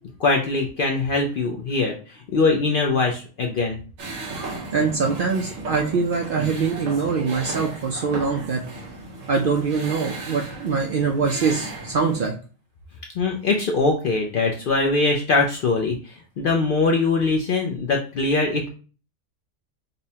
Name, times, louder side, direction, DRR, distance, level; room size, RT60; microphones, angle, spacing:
voice 1, 0.2-3.8 13.2-18.7, left 3 dB, 60° left, 1 dB, 0.6 m, -22 dB
sound 1, 4.0-12.3, right 2 dB, 85° right, 1.3 m, -35 dB
voice 2, 4.7-8.6 9.3-12.3, right 5 dB, 60° right, 1 dB, 0.6 m, -23 dB
5.3 x 2.1 x 2.8 m, 0.37 s
omnidirectional pair, 1.3 m